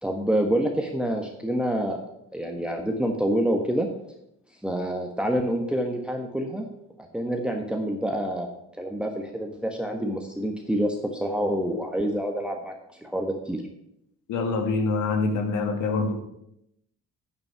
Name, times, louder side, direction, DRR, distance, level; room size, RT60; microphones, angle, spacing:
voice 1, 0.0-2.0 2.3-3.9 4.6-6.7 7.1-8.5 8.8-12.7 13.0-13.6, equal, 5° right, 2 dB, 1.3 m, -27 dB
voice 2, 14.3-16.1, left 3 dB, 85° left, 5 dB, 1.9 m, -25 dB
9.5 x 8.9 x 5.7 m, 0.80 s
cardioid pair, 90°, 30 cm